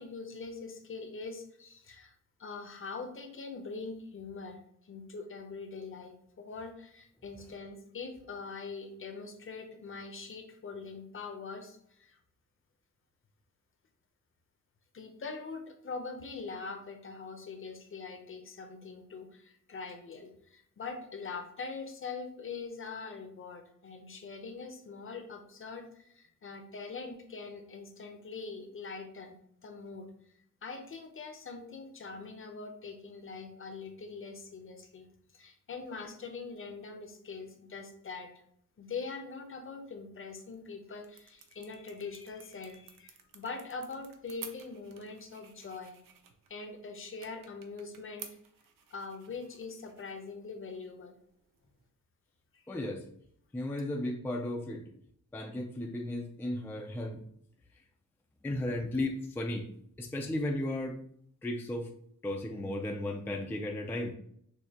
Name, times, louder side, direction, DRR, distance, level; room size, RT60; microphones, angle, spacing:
voice 1, 0.0-2.1 2.4-12.2 14.9-30.1 30.6-35.1 35.3-38.3 38.8-46.0 46.5-48.3 48.9-51.1 52.5-52.7, left 4 dB, 40° left, 6 dB, 0.7 m, -43 dB
sound 1, 40.4-51.9, right 7 dB, 85° right, 0.7 m, -54 dB
voice 2, 52.7-53.0 53.5-54.8 55.3-57.2 58.4-59.7 60.0-61.0 61.4-61.9 62.2-64.1, left 1 dB, 5° left, 1 dB, 0.4 m, -35 dB
6.5 x 2.7 x 2.8 m, 0.68 s
wide cardioid pair, 155°, 32 cm